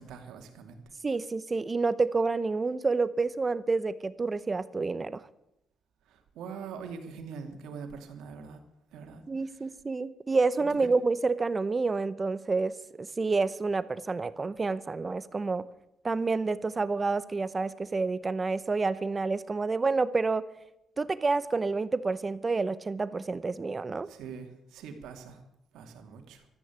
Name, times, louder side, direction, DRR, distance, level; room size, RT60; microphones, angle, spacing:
voice 1, 0.0-0.9 6.0-8.6 8.9-9.7 10.5-10.9 24.0-25.4 25.7-26.5, right 6 dB, 85° right, 5 dB, 2.5 m, -44 dB
voice 2, 1.0-5.2 9.3-15.6 16.0-20.5 21.0-24.1, right 3 dB, 30° right, 16 dB, 0.7 m, -29 dB
13.5 x 10.0 x 9.5 m, 0.83 s
cardioid pair, 90°, 0 cm